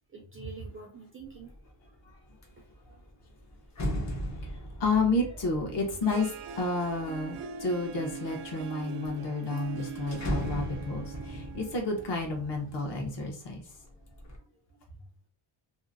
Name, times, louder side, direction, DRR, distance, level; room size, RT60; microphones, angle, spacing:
voice 1, 0.1-1.5 2.6-2.7 4.0-4.6 14.7-14.8, right 4 dB, 30° right, 1 dB, 0.3 m, -47 dB
sound 1, 1.3-1.7 2.1-7.4 8.0-8.7 9.1-9.2 9.4-13.4 13.7-14.4, equal, 35° left, 0.5 m, -38 dB
voice 2, 4.8-13.6, left 3 dB, 55° left, 2 dB, 0.9 m, -31 dB
Harp, 5.8-12.9, right 6 dB, 80° right, 0.6 m, -42 dB
2.8 x 2.5 x 2.5 m, 0.40 s
wide cardioid pair, 180°, 49 cm